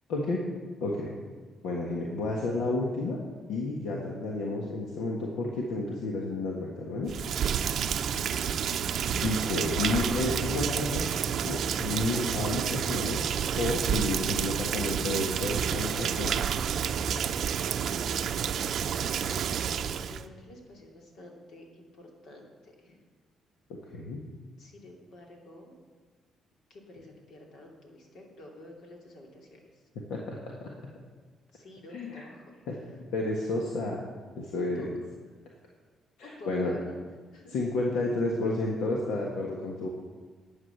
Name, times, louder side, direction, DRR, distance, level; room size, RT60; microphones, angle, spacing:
voice 1, 0.1-0.4 0.8-1.1 1.6-3.2 3.5-7.1 9.1-11.1 11.4-16.6 23.9-24.2 30.1-30.7 31.9-32.2 32.7-32.8 33.1-34.0 34.4-34.9 36.2-36.8 37.5-39.9, left 2 dB, 90° left, -1 dB, 1.5 m, -31 dB
Rain, 7.0-20.2, right 8 dB, 65° right, 0.5 m, -30 dB
voice 2, 7.5-8.6 18.5-18.8 19.3-23.0 24.6-25.7 26.7-29.8 31.5-32.6 34.5-35.1 36.2-37.0 37.3-37.6, left 1 dB, 75° left, 0 dB, 2.7 m, -50 dB
11.0 x 8.2 x 6.8 m, 1.4 s
cardioid pair, 90°, 0 cm